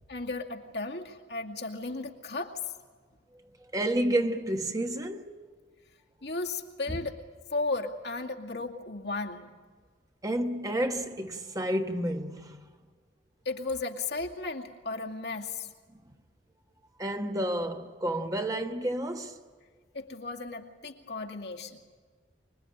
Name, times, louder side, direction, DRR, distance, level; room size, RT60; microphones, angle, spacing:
voice 1, 0.1-2.6 6.2-7.2 7.5-9.5 13.4-15.7 19.9-21.8, left 3 dB, 70° left, 2.3 m, -35 dB
voice 2, 3.7-5.3 10.2-12.6 17.0-19.4, right 1 dB, 20° right, 1.3 m, -30 dB
25.0 x 22.5 x 8.8 m
head